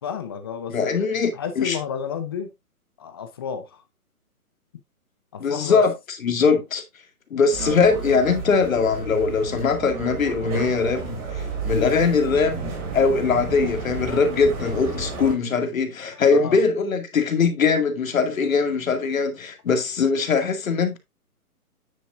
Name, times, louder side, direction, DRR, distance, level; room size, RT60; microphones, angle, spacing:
voice 1, 0.0-2.5 3.0-3.8 5.3-5.8 16.3-16.6, left 7 dB, 15° left, 0.6 m, -31 dB
voice 2, 0.7-1.8 5.4-5.9 6.2-6.8 7.3-21.0, left 5 dB, 60° left, 2.4 m, -21 dB
sound 1, 7.5-15.3, right 4 dB, 20° right, 3.0 m, -32 dB
9.6 x 8.0 x 2.5 m
hypercardioid pair, 150°, 45 cm